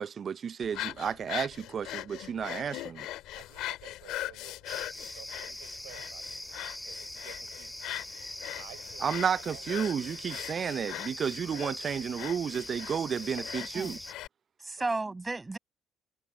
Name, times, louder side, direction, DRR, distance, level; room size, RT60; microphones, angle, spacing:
voice 1, 0.0-3.1 9.0-14.0, right 7 dB, 50° right, 0.5 m, -32 dB
sound 1, 0.6-14.3, left 15 dB, 75° left, 2.1 m, -41 dB
voice 2, 3.3-4.7 5.1-7.8 8.6-9.1 9.5-9.6 10.3-10.4 13.1-13.2 14.7-15.0, right 29 dB, 85° right, 4.0 m, -54 dB
sound 2, 4.7-14.1, left 1 dB, 10° left, 1.7 m, -42 dB
voice 3, 13.6-13.9 14.6-15.6, right 3 dB, 25° right, 6.4 m, -33 dB
hypercardioid pair, 55°, 0 cm